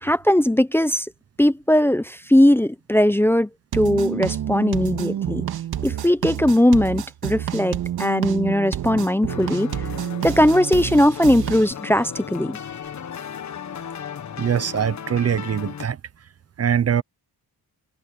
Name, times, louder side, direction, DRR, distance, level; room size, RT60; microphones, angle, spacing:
voice 1, 0.0-1.1 1.4-5.4 5.8-9.7 10.2-12.6, left 1 dB, 5° left, 0.8 m, -19 dB
sound 1, 3.7-11.7, right 11 dB, 75° right, 2.0 m, -28 dB
sound 2, 9.3-15.9, left 8 dB, 50° left, 1.6 m, -35 dB
voice 2, 14.4-16.0 16.6-17.0, right 8 dB, 40° right, 0.8 m, -22 dB
cardioid pair, 115°, 37 cm